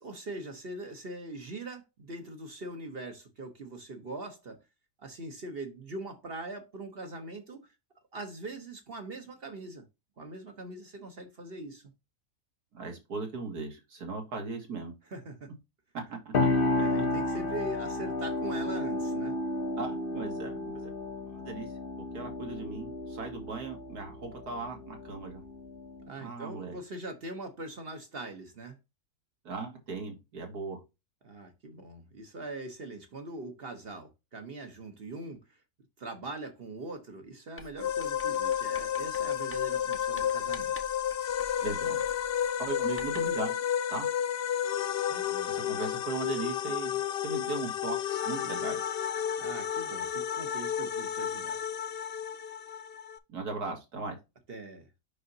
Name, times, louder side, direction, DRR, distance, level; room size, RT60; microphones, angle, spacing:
voice 1, 0.0-4.6 5.0-7.7 8.1-9.9 10.2-11.9 15.0-15.5 16.7-19.4 26.1-28.8 31.2-35.6 36.0-40.7 45.1-45.6 49.4-51.6 54.5-54.9, right 2 dB, 45° right, 1.0 m, -42 dB
voice 2, 12.7-14.9 16.1-16.5 19.8-20.9 21.4-21.7 22.1-25.4 26.2-26.8 29.5-30.8 41.6-42.0 42.6-43.6 43.9-44.1 45.5-48.8 53.3-54.2, right 4 dB, 75° right, 2.2 m, -38 dB
sound 1, 16.3-26.1, left 2 dB, 45° left, 0.9 m, -32 dB
Writing, 37.6-43.5, left 1 dB, 10° left, 0.6 m, -50 dB
sound 2, 37.8-53.2, left 9 dB, 80° left, 0.5 m, -32 dB
6.5 x 5.6 x 2.7 m
omnidirectional pair, 1.7 m